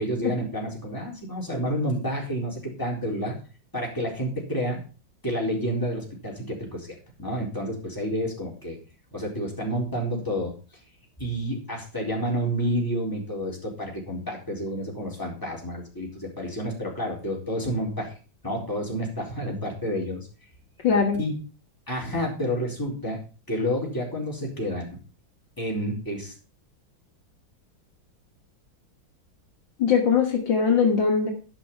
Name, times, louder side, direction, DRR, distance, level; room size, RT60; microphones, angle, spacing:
voice 1, 0.0-3.3 3.7-4.8 5.2-6.9 7.2-8.8 9.1-10.5 11.2-18.2 18.4-20.3 21.1-21.4 21.9-23.2 23.5-24.9 25.6-26.3, equal, 10° left, -3 dB, 4.1 m, -29 dB
voice 2, 20.8-21.2 29.8-31.3, left 6 dB, 65° left, 2 dB, 2.2 m, -21 dB
13.5 x 5.7 x 5.7 m, 0.36 s
omnidirectional pair, 2.2 m